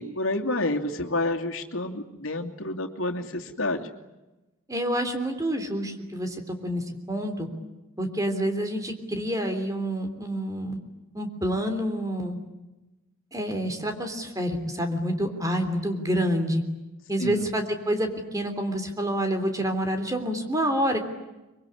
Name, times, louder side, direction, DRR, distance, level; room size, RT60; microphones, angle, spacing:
voice 1, 0.0-3.9 17.2-17.5, left 2 dB, 75° left, 3 dB, 2.7 m, -29 dB
voice 2, 4.7-7.5 8.0-10.8 11.1-12.4 13.3-16.6 17.1-21.0, equal, 15° right, 6 dB, 3.4 m, -28 dB
25.0 x 24.0 x 9.9 m, 1.0 s
head